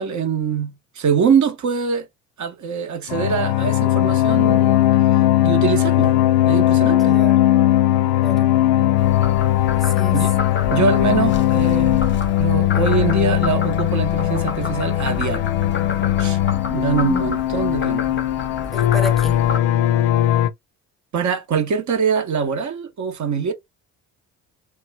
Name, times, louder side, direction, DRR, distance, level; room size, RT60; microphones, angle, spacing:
voice 1, 0.0-2.1 2.4-4.9 5.4-6.2 6.4-7.2 10.1-10.3 10.7-12.0 12.4-15.5 16.2-16.4 16.7-18.2 21.1-23.5, right 6 dB, 40° right, 0.7 m, -23 dB
sound 1, 3.1-20.5, left 13 dB, 70° left, 0.5 m, -18 dB
voice 2, 7.0-7.4 8.2-8.5 9.7-10.2 16.9-17.3 18.7-19.4, equal, ahead, 1.0 m, -31 dB
Frog, 9.0-19.6, left 5 dB, 25° left, 0.7 m, -30 dB
3.0 x 2.1 x 3.2 m
hypercardioid pair, 50°, 45 cm